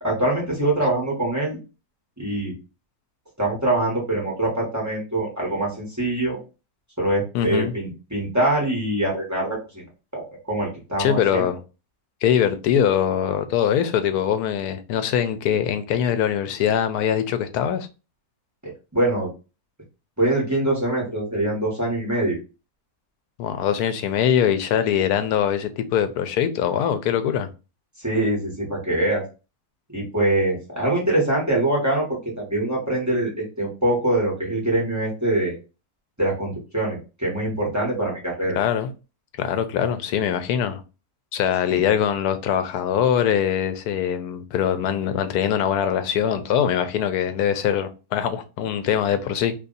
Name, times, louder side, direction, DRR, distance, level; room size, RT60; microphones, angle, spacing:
voice 1, 0.0-1.6 2.2-2.5 3.4-6.4 7.0-9.8 10.1-11.4 18.9-19.3 20.2-22.4 28.0-29.2 29.9-32.0 32.4-35.5 36.2-38.6 41.7-41.8, right 1 dB, 10° right, 1.2 m, -24 dB
voice 2, 7.3-7.7 11.0-11.6 12.2-17.9 23.4-27.5 38.6-38.9 39.4-40.8 41.3-49.5, left 9 dB, 80° left, 1.1 m, -22 dB
2.8 x 2.6 x 3.9 m
omnidirectional pair, 1.6 m